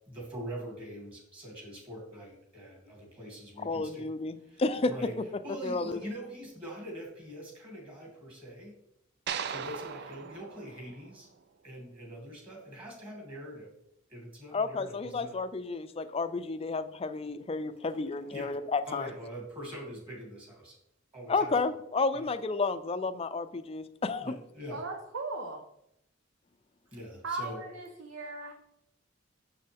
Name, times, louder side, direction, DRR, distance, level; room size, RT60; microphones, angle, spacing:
voice 1, 0.1-4.0 4.4-5.1 5.4-8.7 9.4-11.3 11.6-13.7 14.1-15.3 18.3-18.6 18.9-20.7 21.1-21.6 22.1-22.2 24.2-24.8 26.9-27.6, equal, 25° right, -2 dB, 2.5 m, -43 dB
voice 2, 3.6-4.9 5.6-6.0 14.5-19.1 21.3-24.4, left 3 dB, 30° left, 11 dB, 0.4 m, -31 dB
sound 1, 9.3-11.6, right 7 dB, 55° right, 0.4 m, -39 dB
voice 3, 24.7-25.6 27.2-28.5, right 3 dB, 85° right, 3 dB, 0.9 m, -37 dB
6.8 x 6.6 x 3.5 m, 0.78 s
head